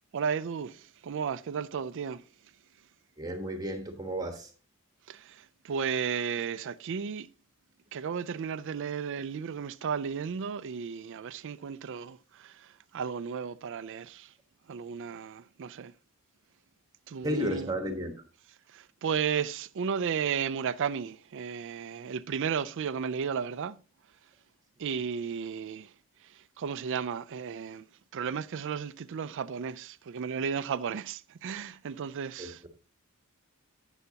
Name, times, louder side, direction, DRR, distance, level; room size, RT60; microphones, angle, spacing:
voice 1, 0.1-2.2 5.1-7.3 7.9-14.3 14.7-15.9 17.1-17.7 18.7-23.8 24.8-25.9 26.2-27.9 28.1-32.6, right 7 dB, 55° right, 0.4 m, -34 dB
voice 2, 3.2-4.5 17.2-18.1 32.4-32.7, equal, 15° right, 1.2 m, -33 dB
11.0 x 8.0 x 2.8 m
head